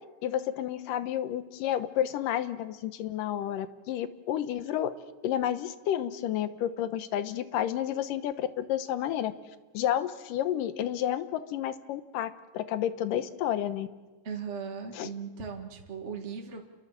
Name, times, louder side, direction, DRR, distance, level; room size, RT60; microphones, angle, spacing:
voice 1, 0.2-4.9 5.2-9.3 9.7-13.9 14.9-15.1, left 11 dB, 90° left, 12 dB, 2.6 m, -31 dB
voice 2, 14.2-16.6, right 6 dB, 25° right, 2 dB, 1.7 m, -38 dB
28.5 x 22.5 x 7.5 m, 1.3 s
omnidirectional pair, 3.8 m